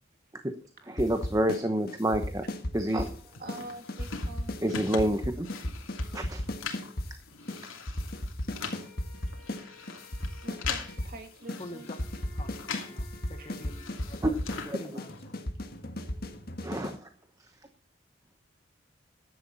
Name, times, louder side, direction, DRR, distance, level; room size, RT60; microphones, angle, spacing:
voice 1, 0.9-2.4 2.7-3.1 4.6-5.5 6.1-6.4 7.4-7.6 14.2-14.3 14.7-15.0 16.6-17.1, right 1 dB, 15° right, 6 dB, 1.0 m, -28 dB
sound 1, 1.0-1.6 1.9-3.2 3.5-3.6 3.9-7.1 7.5-7.6 7.9-9.6 9.9-11.2 11.5-11.6 11.9-17.0, left 1 dB, 50° left, 1.7 m, -35 dB
sound 2, 3.0-13.0 13.3-15.4, left 6 dB, 85° left, 2.9 m, -42 dB
voice 2, 3.4-4.6 10.4-11.9 13.4-13.6, right 2 dB, 45° right, 5 dB, 2.8 m, -45 dB
sound 3, 8.4-14.0, equal, ahead, 6.1 m, -55 dB
voice 3, 11.6-12.0 12.4-15.4, left 1 dB, 30° left, 8 dB, 1.4 m, -47 dB
15.0 x 11.0 x 4.1 m, 0.39 s
head